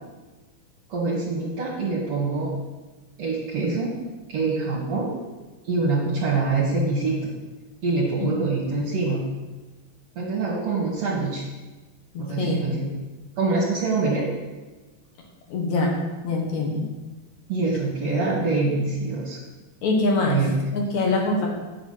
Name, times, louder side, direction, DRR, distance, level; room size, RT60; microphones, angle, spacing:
voice 1, 0.9-2.5 3.2-4.0 4.3-5.1 5.6-7.3 7.8-9.2 10.2-11.4 12.2-12.9 13.4-14.3 17.5-19.4 20.3-20.6, right 3 dB, 55° right, -5 dB, 2.8 m, -25 dB
voice 2, 8.2-8.5 12.1-12.6 15.5-15.9 16.2-16.9 19.8-20.4 20.7-21.5, left 2 dB, 65° left, 0 dB, 2.7 m, -24 dB
8.6 x 7.5 x 5.8 m, 1.2 s
omnidirectional pair, 3.8 m